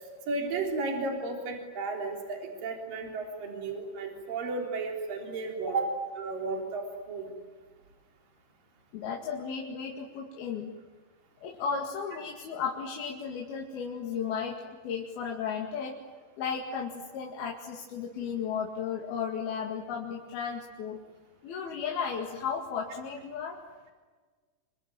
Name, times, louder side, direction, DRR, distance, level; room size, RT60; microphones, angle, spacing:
voice 1, 0.3-7.3, right 3 dB, 60° right, 2 dB, 5.3 m, -33 dB
voice 2, 8.9-10.7 11.4-16.0 16.4-21.0 21.4-23.6, left 6 dB, 75° left, 0 dB, 4.0 m, -34 dB
26.5 x 24.5 x 9.1 m, 1.4 s
omnidirectional pair, 4.5 m